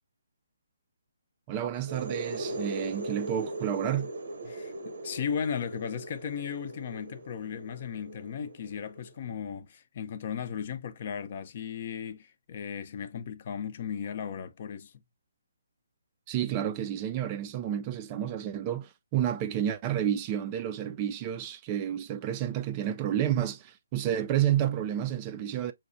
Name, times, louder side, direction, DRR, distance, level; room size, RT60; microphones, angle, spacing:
voice 1, 1.5-4.1 16.3-25.7, right 10 dB, 25° right, 0.3 m, -30 dB
sound 1, 1.7-9.3, right 2 dB, 65° right, 0.7 m, -39 dB
voice 2, 4.5-14.9, left 7 dB, 45° left, 0.5 m, -36 dB
5.7 x 2.1 x 2.6 m
hypercardioid pair, 155°, 0 cm